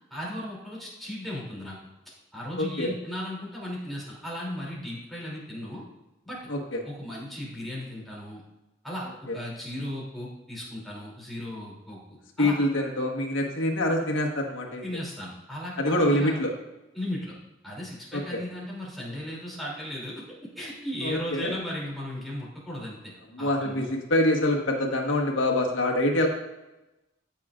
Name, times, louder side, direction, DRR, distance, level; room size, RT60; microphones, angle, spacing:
voice 1, 0.1-1.8 2.3-5.8 6.2-6.4 6.8-8.4 8.8-12.0 12.4-12.6 14.8-16.4 16.9-17.3 17.6-20.2 20.5-23.1 23.4-23.9, left 1 dB, ahead, -5 dB, 2.9 m, -36 dB
voice 2, 2.6-2.9 6.5-6.8 12.4-14.8 15.8-16.5 18.1-18.4 21.0-21.5 23.3-26.3, left 1 dB, 85° left, 1 dB, 1.4 m, -25 dB
13.5 x 5.9 x 2.5 m, 1.0 s
head